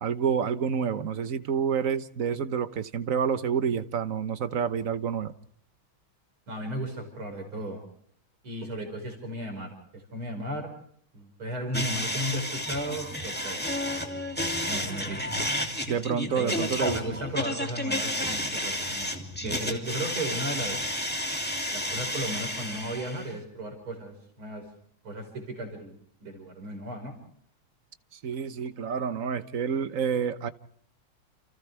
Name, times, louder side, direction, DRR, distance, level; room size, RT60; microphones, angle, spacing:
voice 1, 0.0-5.3 15.9-17.0 28.2-30.5, right 7 dB, 50° right, 1.2 m, -28 dB
voice 2, 6.5-7.8 8.4-10.7 11.1-15.6 16.2-20.9 21.7-24.6 25.0-26.0 26.2-27.1, right 1 dB, 70° right, 6.0 m, -35 dB
sound 1, 11.7-23.3, left 1 dB, 5° left, 2.6 m, -31 dB
29.5 x 29.0 x 3.4 m
omnidirectional pair, 2.4 m